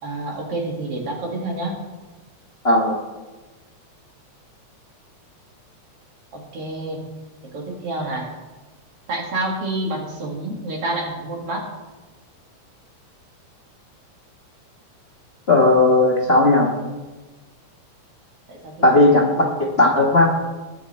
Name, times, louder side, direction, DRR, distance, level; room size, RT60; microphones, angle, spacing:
voice 1, 0.0-1.8 6.3-7.0 7.5-8.3 9.1-11.7 18.5-19.0, right 2 dB, 55° right, 0 dB, 2.9 m, -28 dB
voice 2, 15.5-16.7 18.8-19.3 19.8-20.3, left 2 dB, 35° left, -1 dB, 1.0 m, -15 dB
20.5 x 7.1 x 4.3 m, 1.2 s
omnidirectional pair, 3.3 m